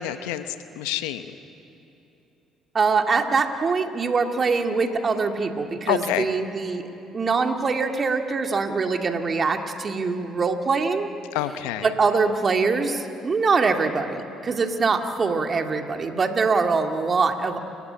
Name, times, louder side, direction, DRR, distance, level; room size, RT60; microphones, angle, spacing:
voice 1, 0.0-1.4 5.9-6.3 11.3-11.9, left 12 dB, 85° left, 10 dB, 0.9 m, -28 dB
voice 2, 2.7-11.1 11.8-17.6, right 4 dB, 40° right, 5 dB, 2.3 m, -23 dB
29.0 x 16.0 x 8.9 m, 3.0 s
hypercardioid pair, 60°, 0 cm